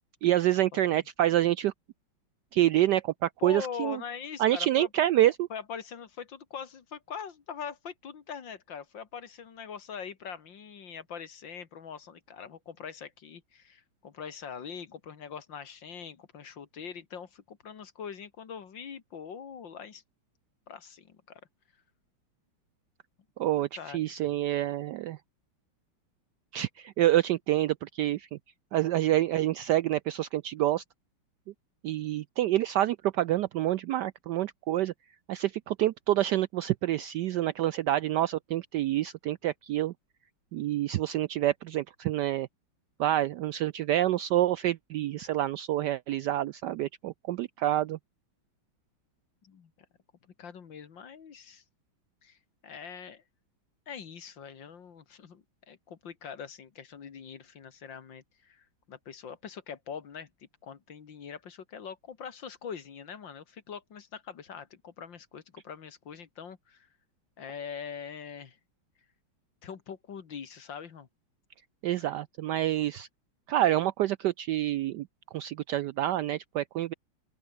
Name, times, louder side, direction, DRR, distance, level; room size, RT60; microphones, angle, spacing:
voice 1, 0.2-1.7 2.5-4.0 4.4-5.5 23.4-25.2 26.5-28.4 28.7-30.8 31.8-34.9 35.3-39.9 40.5-42.5 43.0-48.0 71.8-73.1 73.5-75.1 75.3-76.9, right 13 dB, 75° right, 1.0 m, -27 dB
voice 2, 3.4-4.9 5.2-20.0 20.7-21.4 23.6-24.1 49.4-49.7 50.4-51.6 52.2-52.4 52.6-53.2 53.9-60.3 60.6-66.9 67.4-68.6 69.6-71.1 71.9-72.1, left 7 dB, 65° left, 2.5 m, -43 dB
open air
omnidirectional pair, 2.3 m